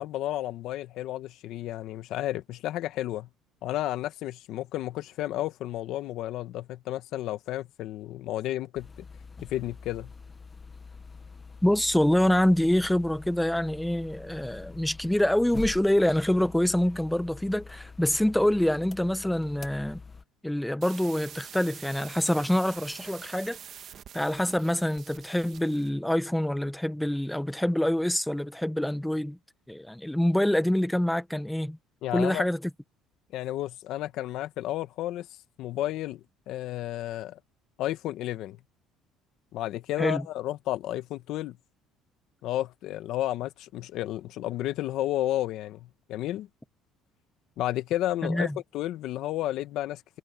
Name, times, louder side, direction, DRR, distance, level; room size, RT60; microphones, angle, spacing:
voice 1, 0.0-3.3 3.6-9.1 9.4-10.1 32.0-32.4 33.3-35.3 35.6-37.4 37.8-38.6 39.5-41.6 42.4-46.5 47.6-50.2, left 14 dB, 65° left, 1.4 m, -32 dB
sound 1, 8.8-20.2, left 4 dB, 20° left, 1.5 m, -45 dB
voice 2, 11.6-20.0 20.4-23.6 24.1-29.4 29.7-31.8 32.1-32.6 40.0-40.3 48.2-48.6, left 1 dB, 5° left, 1.1 m, -26 dB
sound 2, 20.8-25.9, right 9 dB, 45° right, 1.6 m, -46 dB
cardioid pair, 125°, 0 cm